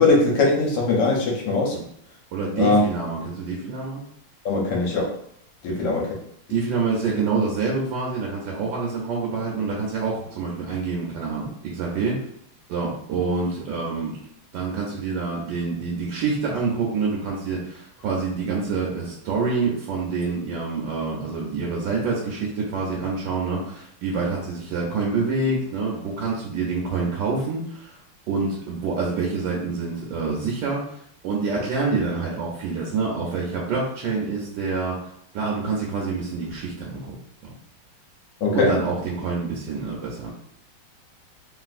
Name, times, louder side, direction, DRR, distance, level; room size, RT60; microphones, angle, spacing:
voice 1, 0.0-1.7 2.6-2.8 4.4-5.1 5.6-6.0 38.4-38.7, left 3 dB, 65° left, -2 dB, 1.2 m, -20 dB
voice 2, 2.3-4.0 5.7-5.8 6.5-12.2 12.7-14.2 14.5-28.0 28.3-31.0 31.2-37.1 38.5-40.3, right 4 dB, 70° right, -3 dB, 1.2 m, -27 dB
3.2 x 2.5 x 2.4 m, 0.67 s
omnidirectional pair, 2.3 m